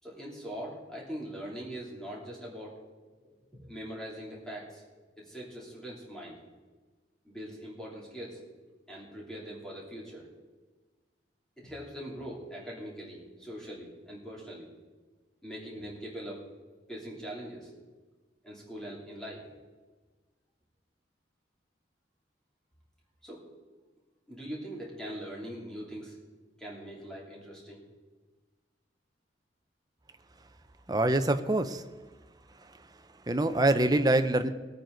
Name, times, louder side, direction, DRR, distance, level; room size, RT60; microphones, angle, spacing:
voice 1, 0.0-2.8 3.2-4.8 5.2-6.4 7.2-8.4 8.9-10.3 11.6-14.7 15.4-16.4 16.9-17.7 18.4-19.4 23.2-23.4 24.3-26.2 26.6-27.8, equal, 5° left, -5 dB, 3.0 m, -42 dB
voice 2, 30.9-31.8 32.6-32.9 33.3-34.5, right 2 dB, 20° right, 9 dB, 0.6 m, -25 dB
20.0 x 9.2 x 3.9 m, 1.3 s
head